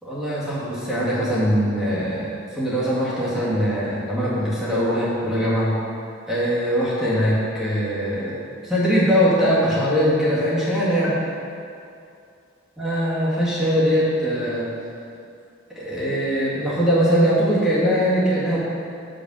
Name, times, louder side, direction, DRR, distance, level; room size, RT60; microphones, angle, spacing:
voice 1, 0.0-5.8 6.3-8.4 8.6-11.2 12.8-14.7 15.8-18.6, equal, 5° right, -9 dB, 2.2 m, -21 dB
7.5 x 5.2 x 6.3 m, 2.5 s
head